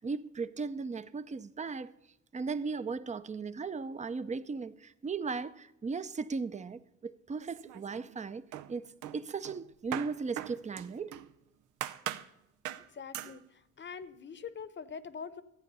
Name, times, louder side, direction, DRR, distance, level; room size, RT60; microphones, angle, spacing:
voice 1, 0.0-1.9 2.3-8.9 9.1-11.1, right 4 dB, 25° right, 0.6 m, -37 dB
sound 1, 7.4-8.2 8.5-11.3 11.8-12.3 12.6-12.9 13.1-13.4, right 12 dB, 85° right, 0.7 m, -40 dB
voice 2, 12.8-15.4, left 6 dB, 40° left, 0.9 m, -44 dB
14.0 x 9.1 x 5.5 m
cardioid pair, 90°, 30 cm